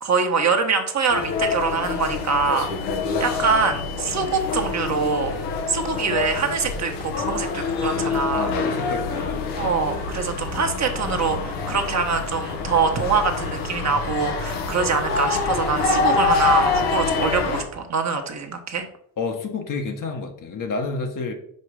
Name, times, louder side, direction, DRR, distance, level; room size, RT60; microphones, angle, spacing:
voice 1, 0.0-2.7 3.2-5.3 5.7-8.5 9.6-18.8, right 5 dB, 40° right, 1.2 m, -24 dB
sound 1, 1.1-17.6, left 4 dB, 85° left, 1.1 m, -26 dB
voice 2, 8.3-9.7 19.2-21.3, left 4 dB, 50° left, 1.2 m, -29 dB
5.5 x 5.0 x 4.7 m
cardioid pair, 80°, 41 cm